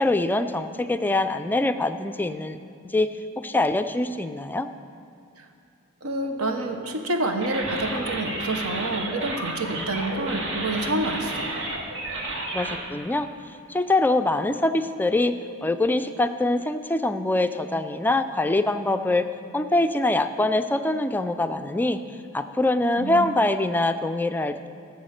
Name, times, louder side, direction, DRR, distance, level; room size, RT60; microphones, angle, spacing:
voice 1, 0.0-2.6 2.9-3.1 3.4-4.7 12.5-13.3 13.7-15.3 15.6-19.3 19.5-22.0 22.3-24.7, left 2 dB, 10° left, 9 dB, 0.3 m, -24 dB
voice 2, 6.0-11.5 23.0-23.3, right 2 dB, 80° right, 5 dB, 1.1 m, -28 dB
sound 1, 7.4-12.8, right 2 dB, 60° right, 1.6 m, -31 dB
14.5 x 7.1 x 6.5 m, 2.6 s
head